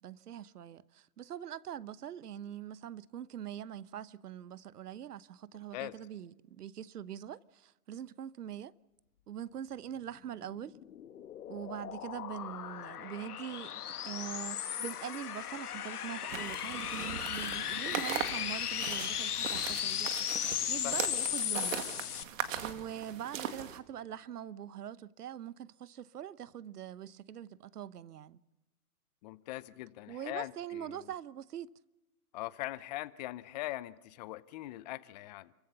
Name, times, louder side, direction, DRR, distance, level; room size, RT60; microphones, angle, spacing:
voice 1, 0.0-8.7 9.3-10.7 11.5-21.9 22.5-28.4 30.1-31.7, right 10 dB, 85° right, 1.0 m, -43 dB
sound 1, 10.4-22.2, left 10 dB, 80° left, 1.4 m, -36 dB
sound 2, 16.3-23.8, right 9 dB, 60° right, 2.2 m, -40 dB
voice 2, 29.2-31.1 32.3-35.5, left 17 dB, 30° left, 0.7 m, -41 dB
29.5 x 15.0 x 6.9 m
hypercardioid pair, 145°, 45 cm